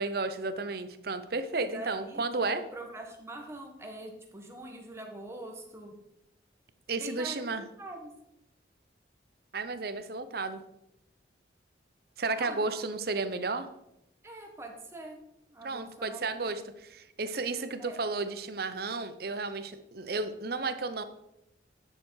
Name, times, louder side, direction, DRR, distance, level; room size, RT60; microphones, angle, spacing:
voice 1, 0.0-2.6 6.9-7.6 9.5-10.6 12.2-13.7 15.6-21.0, right 3 dB, 55° right, 11 dB, 0.7 m, -33 dB
voice 2, 1.6-6.0 6.9-7.4 7.8-8.1 12.3-12.8 14.2-15.2 15.5-16.6 17.8-18.0, right 1 dB, 15° right, 1 dB, 1.4 m, -44 dB
9.9 x 6.7 x 4.8 m, 0.85 s
head